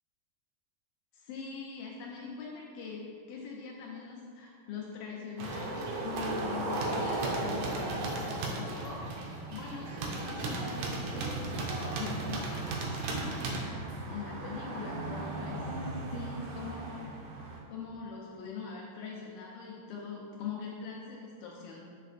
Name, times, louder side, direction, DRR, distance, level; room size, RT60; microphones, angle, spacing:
voice 1, 1.1-17.1 17.7-21.8, left 5 dB, 80° left, -3 dB, 2.1 m, -43 dB
sound 1, 5.4-17.6, right 2 dB, 90° right, 1.8 m, -35 dB
8.0 x 5.0 x 2.4 m, 2.3 s
omnidirectional pair, 4.6 m